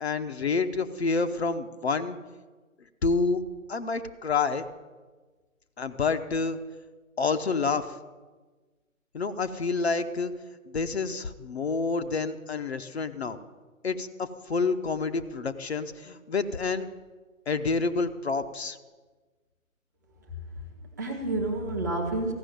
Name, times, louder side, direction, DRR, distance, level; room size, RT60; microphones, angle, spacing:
voice 1, 0.0-2.2 3.0-3.4 3.7-4.7 5.8-6.6 7.2-7.9 9.1-10.3 10.7-13.4 13.8-16.9 17.5-18.8, left 4 dB, 50° left, 8 dB, 0.8 m, -28 dB
voice 2, 20.3-22.3, right 2 dB, 15° right, 0 dB, 0.7 m, -31 dB
14.5 x 6.1 x 9.2 m, 1.3 s
figure-of-eight pair, 140°, 41 cm